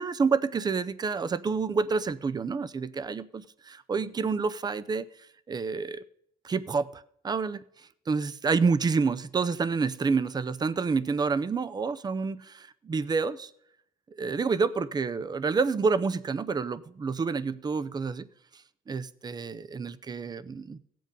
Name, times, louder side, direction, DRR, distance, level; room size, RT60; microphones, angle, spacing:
voice 1, 0.0-5.1 5.5-6.0 6.4-7.6 8.1-13.5 14.2-18.3 18.9-20.8, right 4 dB, 25° right, 0.6 m, -28 dB
16.5 x 7.7 x 5.3 m
cardioid pair, 110°, 17 cm